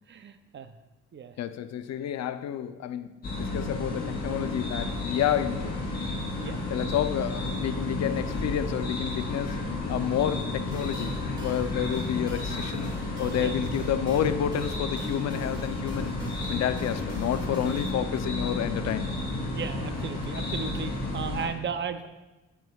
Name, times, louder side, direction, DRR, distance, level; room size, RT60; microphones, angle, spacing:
voice 1, 0.1-0.7 1.1-1.3 6.4-6.6 13.3-13.5 19.5-22.1, right 7 dB, 40° right, 10 dB, 0.5 m, -35 dB
voice 2, 1.4-5.8 6.7-9.6 9.9-12.9 13.2-19.1, left 10 dB, 60° left, 12 dB, 0.5 m, -30 dB
sound 1, 3.2-21.4, left 2 dB, 30° left, 2.5 m, -32 dB
sound 2, 10.7-17.9, equal, 15° right, 1.9 m, -42 dB
12.0 x 6.0 x 2.3 m, 1.1 s
cardioid pair, 90°, 30 cm